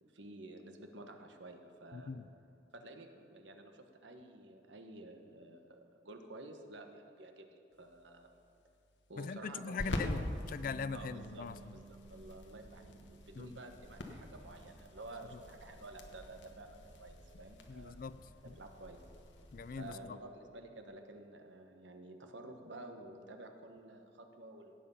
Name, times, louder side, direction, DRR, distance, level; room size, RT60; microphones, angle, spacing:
voice 1, 0.0-2.1 2.7-8.3 9.1-10.3 10.9-11.5 11.7-18.0 18.6-19.0 19.8-24.8, right 2 dB, 75° right, 5 dB, 1.2 m, -51 dB
voice 2, 1.9-2.3 9.2-11.8 13.4-13.6 17.7-18.6 19.5-20.2, left 5 dB, 45° left, 15 dB, 0.4 m, -42 dB
sound 1, 7.7-19.9, left 1 dB, 75° left, 1.2 m, -46 dB
Bass guitar, 10.5-16.8, right 4 dB, 20° right, 2.3 m, -59 dB
17.0 x 7.8 x 5.5 m, 2.6 s
head